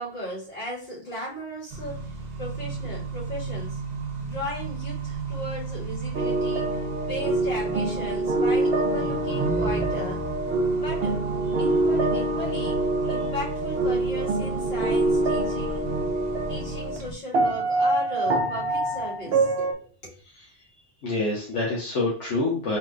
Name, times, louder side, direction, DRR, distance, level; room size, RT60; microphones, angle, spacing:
voice 1, 0.0-2.1 2.4-3.8 4.2-10.2 10.7-11.1 11.6-15.8 16.5-20.2, left 1 dB, 55° left, -7 dB, 2.1 m, -36 dB
Accelerating revving vroom, 1.7-17.1, right 4 dB, 40° right, 1.0 m, -34 dB
sound 1, 6.1-17.0 17.3-19.7, right 2 dB, 65° right, 0.9 m, -25 dB
voice 2, 21.0-22.8, left 2 dB, 80° left, -5 dB, 1.3 m, -27 dB
4.2 x 3.1 x 2.5 m, 0.42 s
omnidirectional pair, 1.2 m